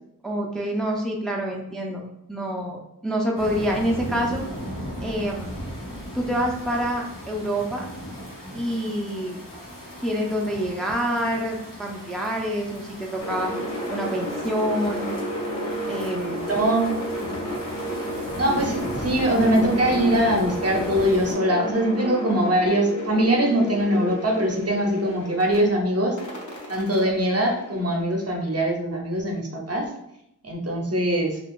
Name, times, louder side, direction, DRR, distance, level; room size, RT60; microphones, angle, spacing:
voice 1, 0.2-4.5 5.0-5.5 6.1-7.9 8.5-9.4 10.0-13.5 13.9-15.1 15.9-16.4, equal, ahead, -1 dB, 0.5 m, -27 dB
sound 1, 3.4-21.3, equal, 90° left, 1.0 m, -37 dB
sound 2, 13.2-25.6 26.2-28.3, equal, 60° left, 0.9 m, -32 dB
voice 2, 16.4-17.0 18.4-26.2 26.7-29.9 30.4-31.4, right 1 dB, 50° right, 1 dB, 0.7 m, -22 dB
2.4 x 2.3 x 3.6 m, 0.81 s
wide cardioid pair, 50°, 32 cm